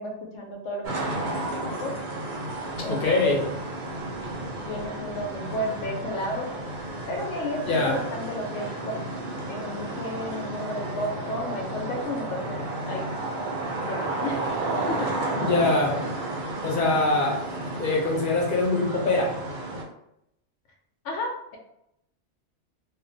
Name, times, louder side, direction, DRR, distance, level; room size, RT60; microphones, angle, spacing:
voice 1, 0.0-1.9 2.8-3.4 4.6-6.5 7.1-9.0 9.5-12.6 12.9-13.1 13.8-14.4 14.9-15.1 21.0-21.6, left 1 dB, 90° left, 1 dB, 0.9 m, -33 dB
sound 1, 0.8-19.8, right 2 dB, 55° right, 0.6 m, -32 dB
voice 2, 2.9-3.4 7.6-8.0 15.4-16.0 16.6-17.5 17.8-19.3, left 2 dB, 50° left, -3 dB, 0.7 m, -23 dB
2.4 x 2.1 x 2.6 m, 0.79 s
omnidirectional pair, 1.2 m